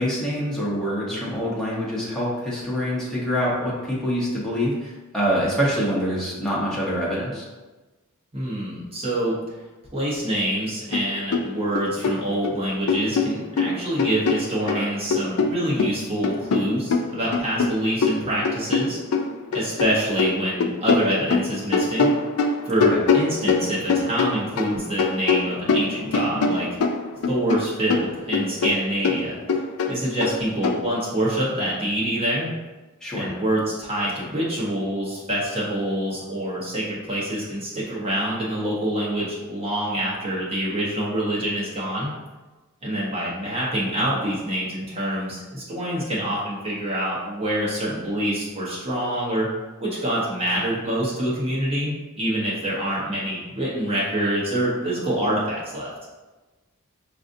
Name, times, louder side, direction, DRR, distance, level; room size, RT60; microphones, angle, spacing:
voice 1, 0.0-7.5 22.9-23.0 33.0-33.3, equal, 5° left, -7 dB, 0.9 m, -25 dB
voice 2, 8.3-9.4 9.9-19.0 19.5-22.1 22.6-26.7 27.3-29.4 29.9-32.5 33.1-42.1 42.8-49.5 49.8-55.9, right 1 dB, 25° right, -7 dB, 0.9 m, -26 dB
sound 1, 10.9-11.1 11.3-12.5 12.9-14.8 15.1-19.9 20.2-24.7 25.0-27.6 27.9-30.8, left 4 dB, 70° left, 0.4 m, -23 dB
4.8 x 2.6 x 2.5 m, 1.2 s
head